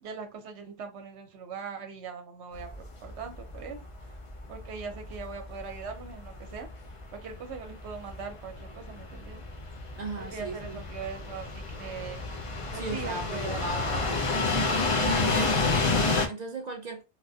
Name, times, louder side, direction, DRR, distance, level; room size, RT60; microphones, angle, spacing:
voice 1, 0.0-3.9 4.5-6.7 7.1-9.4 10.2-12.2 12.7-14.2, right 5 dB, 75° right, 1.0 m, -41 dB
sound 1, 2.5-16.3, left 3 dB, 40° left, 0.5 m, -30 dB
voice 2, 10.0-10.8 12.7-14.0 15.0-17.0, right 2 dB, 55° right, 0.5 m, -37 dB
3.2 x 2.1 x 2.7 m
omnidirectional pair, 1.1 m